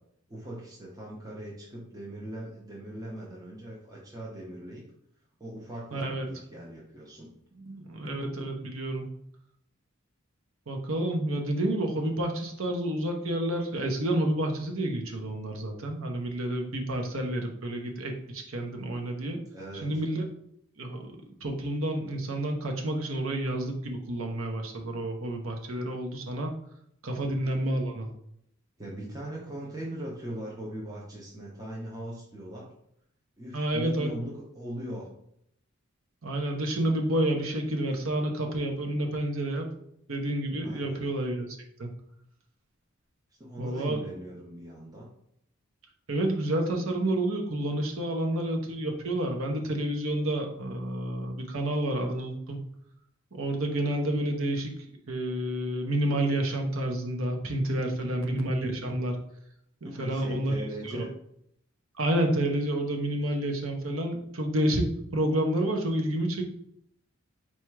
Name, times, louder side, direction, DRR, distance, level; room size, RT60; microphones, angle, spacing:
voice 1, 0.3-4.8 5.4-7.3 19.5-20.0 27.1-27.3 28.8-32.7 33.4-35.1 40.6-41.0 43.4-45.0 59.8-61.1, right 1 dB, 15° right, -4 dB, 0.6 m, -40 dB
voice 2, 5.9-6.3 7.6-9.1 10.7-19.4 19.8-20.2 20.8-21.0 21.4-26.5 27.0-28.1 33.5-34.1 36.2-39.7 40.1-41.5 41.8-41.9 43.6-44.0 46.1-52.6 53.3-54.7 55.1-59.1 59.8-60.5 60.9-61.0 62.0-66.4, right 1 dB, 75° right, 3 dB, 0.8 m, -29 dB
4.3 x 2.4 x 4.5 m, 0.73 s
head